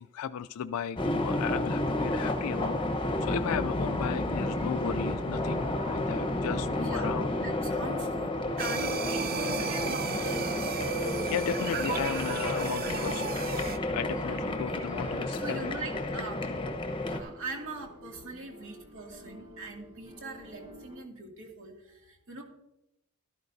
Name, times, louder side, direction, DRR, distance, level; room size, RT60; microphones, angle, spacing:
voice 1, 0.0-7.3 11.3-15.7, left 8 dB, 70° left, 12 dB, 0.3 m, -35 dB
sound 1, 1.0-17.2, left 1 dB, 25° left, 1.0 m, -31 dB
sound 2, 1.1-21.0, left 1 dB, 25° right, 4.4 m, -49 dB
voice 2, 6.8-7.1 7.4-10.9 14.5-14.8 15.4-16.5 17.0-22.4, right 3 dB, 60° right, 1 dB, 2.4 m, -41 dB
sound 3, 8.6-13.8, right 6 dB, 40° right, 0.5 m, -35 dB
13.0 x 12.5 x 2.7 m, 0.87 s
head